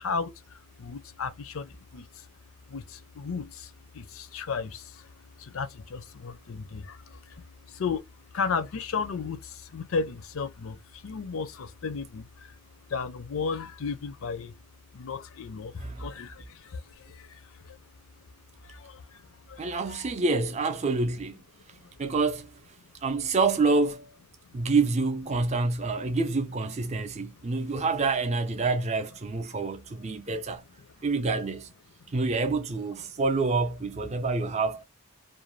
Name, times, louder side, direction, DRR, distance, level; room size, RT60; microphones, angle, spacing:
voice 1, 0.0-2.3 2.7-12.5 12.9-14.6 14.9-17.8 18.6-20.1 21.7-21.9 32.0-32.1, left 5 dB, 65° left, 0.5 m, -35 dB
voice 2, 19.6-21.4 22.0-22.5 23.0-24.1 24.5-30.6 31.0-31.7 32.1-34.8, right 3 dB, 30° right, 0.4 m, -27 dB
2.5 x 2.2 x 3.1 m
head